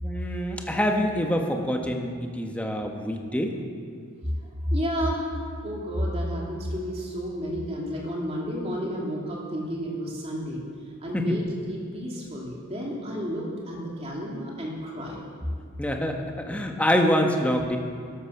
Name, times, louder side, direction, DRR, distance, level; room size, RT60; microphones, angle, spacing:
voice 1, 0.0-3.6 11.1-11.4 15.8-17.8, equal, 5° left, 3 dB, 1.1 m, -26 dB
voice 2, 4.7-5.2 5.6-10.6 11.0-15.2, equal, 30° right, -3 dB, 2.8 m, -31 dB
12.5 x 12.5 x 5.8 m, 2.1 s
head